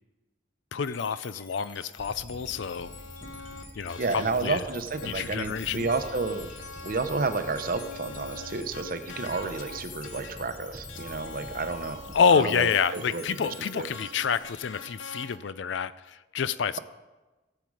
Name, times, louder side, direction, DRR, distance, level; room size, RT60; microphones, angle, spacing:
voice 1, 0.7-2.9 3.8-4.6 5.0-5.9 12.1-16.8, left 6 dB, 65° left, 16 dB, 0.4 m, -27 dB
sound 1, 0.8-14.4, left 5 dB, 45° left, 1.6 m, -49 dB
sound 2, 2.0-12.2, equal, ahead, 0.7 m, -47 dB
sound 3, 2.5-15.4, left 3 dB, 80° left, 1.1 m, -44 dB
voice 2, 4.0-6.5 6.8-12.0 12.3-13.9, right 3 dB, 45° right, 9 dB, 0.8 m, -31 dB
16.0 x 7.7 x 4.8 m, 1.1 s
head